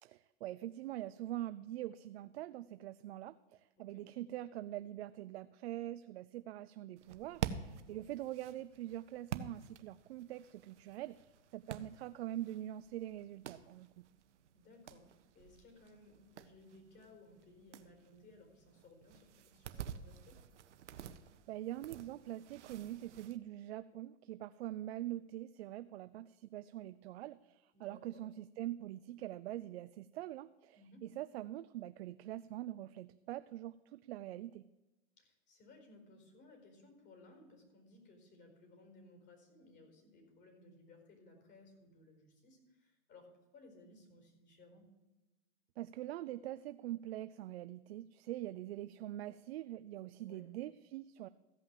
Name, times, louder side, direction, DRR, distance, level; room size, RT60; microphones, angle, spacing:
voice 1, 0.0-11.2 11.5-13.9 21.5-34.6 45.8-51.3, right 14 dB, 65° right, 13 dB, 0.5 m, -44 dB
sound 1, 7.0-23.4, right 8 dB, 80° right, 1.0 m, -49 dB
voice 2, 7.7-8.0 14.5-20.4 27.7-28.3 30.7-31.1 35.2-43.3 43.5-44.9 50.1-50.5, left 2 dB, 30° left, 3 dB, 4.7 m, -61 dB
15.0 x 5.7 x 7.5 m, 1.1 s
hypercardioid pair, 120°, 35 cm